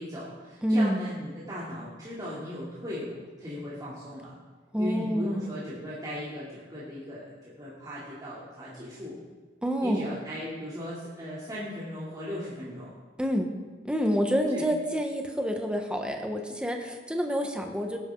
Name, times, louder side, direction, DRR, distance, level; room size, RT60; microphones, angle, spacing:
voice 1, 0.0-4.3 4.8-9.2 9.8-12.9 14.5-14.6, left 1 dB, 20° right, -9 dB, 3.1 m, -37 dB
voice 2, 0.6-1.0 4.7-5.4 9.6-10.0 13.2-13.5 13.8-18.0, equal, 5° right, 3 dB, 1.3 m, -27 dB
18.0 x 11.0 x 3.9 m, 1.4 s
head